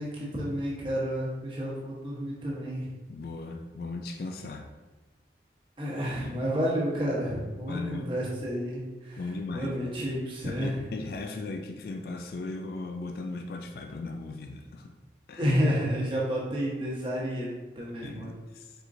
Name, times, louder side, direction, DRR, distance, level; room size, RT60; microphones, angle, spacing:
voice 1, 0.0-2.9 5.8-9.2 9.5-10.8 15.4-18.3, equal, 30° right, -6 dB, 1.1 m, -30 dB
voice 2, 3.1-4.7 7.7-8.1 9.2-9.7 10.4-14.9 15.3-15.5 18.0-18.7, left 3 dB, 55° left, 4 dB, 0.3 m, -37 dB
4.3 x 3.8 x 2.6 m, 1.2 s
head